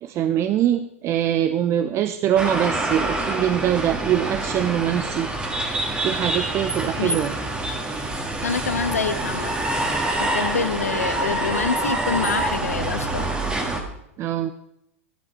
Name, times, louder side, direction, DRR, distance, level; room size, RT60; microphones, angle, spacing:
voice 1, 0.0-5.3 6.0-7.4 14.2-14.5, right 11 dB, 35° right, 10 dB, 0.5 m, -23 dB
sound 1, 2.4-13.8, right 2 dB, 15° right, 1.5 m, -26 dB
voice 2, 8.4-9.5 10.2-13.3, left 6 dB, 90° left, 12 dB, 0.7 m, -26 dB
12.0 x 5.8 x 5.4 m, 0.81 s
hypercardioid pair, 105°, 8 cm